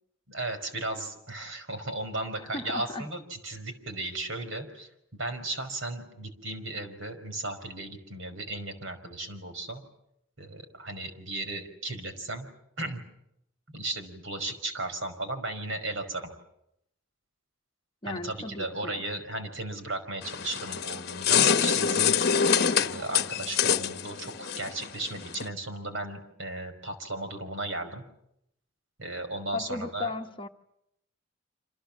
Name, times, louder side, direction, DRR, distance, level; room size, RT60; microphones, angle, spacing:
voice 1, 0.3-9.8 10.4-12.5 12.8-13.0 13.7-16.3 18.0-22.2 22.8-28.0 29.0-30.1, right 2 dB, 70° right, 7 dB, 5.1 m, -35 dB
voice 2, 2.5-3.1 18.0-19.0 29.5-30.5, left 3 dB, 25° left, 5 dB, 1.1 m, -36 dB
sound 1, 20.2-25.5, left 7 dB, 50° left, 1.0 m, -26 dB
27.5 x 27.0 x 7.4 m, 0.78 s
head